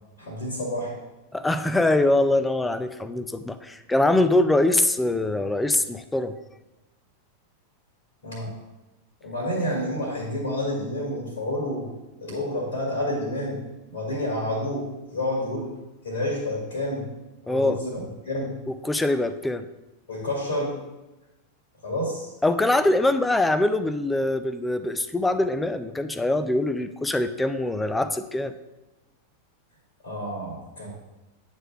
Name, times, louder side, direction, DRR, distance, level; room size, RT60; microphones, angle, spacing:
voice 1, 0.2-0.9 8.2-8.5 9.2-11.9 12.2-13.6 13.9-15.7 16.0-17.0 17.4-18.5 20.1-20.8 21.8-22.3 30.0-30.9, left 1 dB, 60° left, -2 dB, 1.9 m, -29 dB
voice 2, 1.3-6.3 17.5-17.8 18.8-19.6 22.4-28.5, left 2 dB, 5° left, 11 dB, 0.4 m, -23 dB
9.1 x 3.3 x 6.4 m, 1.0 s
figure-of-eight pair, 90°, 0 cm